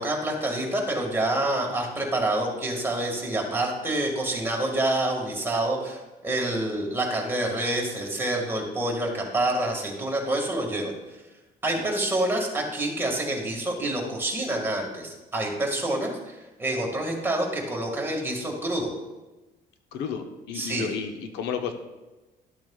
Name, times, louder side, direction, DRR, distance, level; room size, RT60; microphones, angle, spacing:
voice 1, 0.0-10.9 11.6-18.9 20.5-20.9, right 1 dB, 15° right, -1 dB, 1.9 m, -27 dB
voice 2, 19.9-21.7, left 7 dB, 80° left, 7 dB, 0.8 m, -32 dB
12.5 x 7.5 x 2.4 m, 1.1 s
cardioid pair, 110°, 17 cm